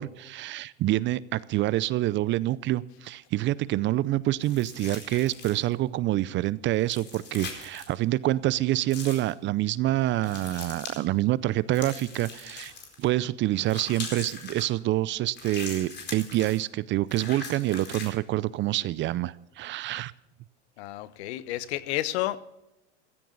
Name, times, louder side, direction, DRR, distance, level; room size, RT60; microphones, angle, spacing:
voice 1, 0.0-12.7 13.0-20.1, right 15 dB, 35° right, 20 dB, 0.5 m, -27 dB
sound 1, 4.4-5.7 6.8-7.9 8.9-9.3 10.2-11.0 11.7-13.1 13.6-14.7 15.3-16.6 17.1-18.1, left 4 dB, 30° left, 4.4 m, -41 dB
voice 2, 20.8-22.4, left 15 dB, 70° left, 16 dB, 1.1 m, -31 dB
16.0 x 14.5 x 3.9 m, 0.90 s
hypercardioid pair, 105°, 34 cm